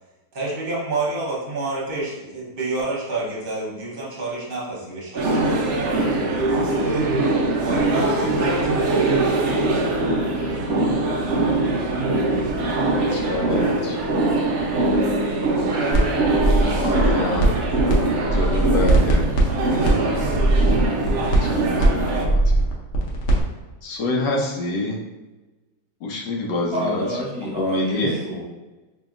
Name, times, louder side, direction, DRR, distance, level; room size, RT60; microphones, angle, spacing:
voice 1, 0.3-7.1 7.6-9.0, right 2 dB, 40° right, -5 dB, 0.9 m, -29 dB
sound 1, 5.2-22.3, right 2 dB, 70° right, 0.6 m, -22 dB
voice 2, 13.1-14.0 16.5-17.5 17.9-19.3 19.7-20.3 21.4-22.4 23.8-25.0 26.0-27.1 27.6-28.2, left 2 dB, 90° left, 1 dB, 1.3 m, -27 dB
sound 2, 15.9-16.0 16.3-17.9 18.2-23.4, right 2 dB, 60° left, 1.0 m, -20 dB
voice 3, 26.7-28.4, equal, 10° right, -4 dB, 0.4 m, -28 dB
5.1 x 2.8 x 2.4 m, 1.1 s
omnidirectional pair, 1.8 m